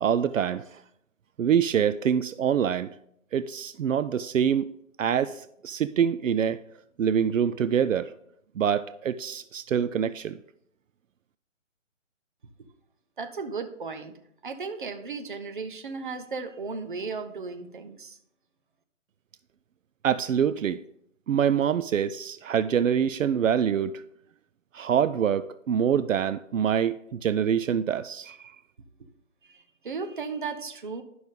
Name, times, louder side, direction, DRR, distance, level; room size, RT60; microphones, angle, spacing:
voice 1, 0.0-0.8 1.4-2.9 3.3-4.7 5.0-6.6 7.0-8.1 8.6-10.4 20.0-20.8 21.3-24.0 24.7-28.5, right 8 dB, 75° right, 0.5 m, -25 dB
voice 2, 13.2-14.1 14.4-18.2 29.5-31.0, right 4 dB, 40° right, 0.8 m, -35 dB
11.0 x 6.0 x 3.8 m
hypercardioid pair, 165°, 39 cm